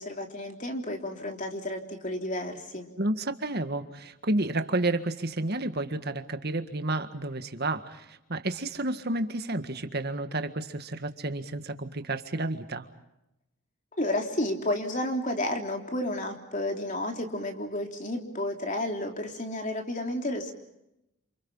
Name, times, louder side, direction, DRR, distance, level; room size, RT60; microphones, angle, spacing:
voice 1, 0.0-2.9 13.9-20.5, left 1 dB, 35° left, 3 dB, 3.3 m, -31 dB
voice 2, 3.0-12.9, right 2 dB, 45° right, 8 dB, 1.8 m, -31 dB
29.0 x 28.0 x 5.6 m, 0.88 s
head